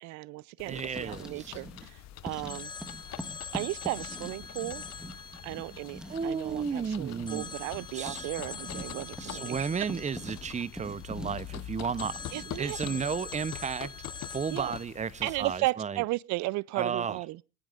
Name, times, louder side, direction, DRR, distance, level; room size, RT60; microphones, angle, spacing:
voice 1, 0.0-2.7 3.5-4.8 5.4-9.9 12.3-12.8 14.5-14.8 15.2-17.4, right 21 dB, 60° right, 0.5 m, -35 dB
sound 1, 0.6-15.6, left 14 dB, 55° left, 0.9 m, -46 dB
voice 2, 0.7-1.6 6.1-7.5 7.9-8.3 9.2-12.1 12.6-13.9 14.3-16.0 16.8-17.2, right 6 dB, 20° right, 0.8 m, -33 dB
Writing, 0.8-1.9 2.2-13.2, equal, ahead, 1.4 m, -45 dB
Telephone, 2.5-6.8 7.3-11.5 12.0-14.8, left 4 dB, 15° left, 0.7 m, -44 dB
26.5 x 9.3 x 2.5 m
supercardioid pair, 90°, 32 cm